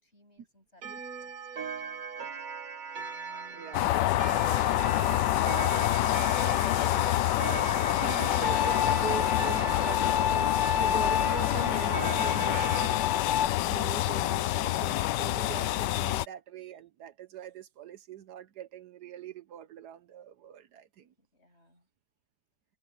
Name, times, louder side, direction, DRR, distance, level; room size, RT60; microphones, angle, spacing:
voice 1, 0.0-0.8 1.2-2.1 3.2-5.5 21.2-21.9, left 2 dB, 40° left, 8.0 m, -61 dB
Clock, 0.8-12.9, right 6 dB, 55° right, 2.0 m, -39 dB
voice 2, 3.5-4.0 7.7-13.1 13.6-21.1, right 9 dB, 70° right, 1.3 m, -42 dB
sound 1, 3.7-16.2, left 15 dB, 85° left, 1.2 m, -27 dB
Bowed string instrument, 8.4-13.5, left 8 dB, 65° left, 1.2 m, -30 dB
omnidirectional pair, 1.8 m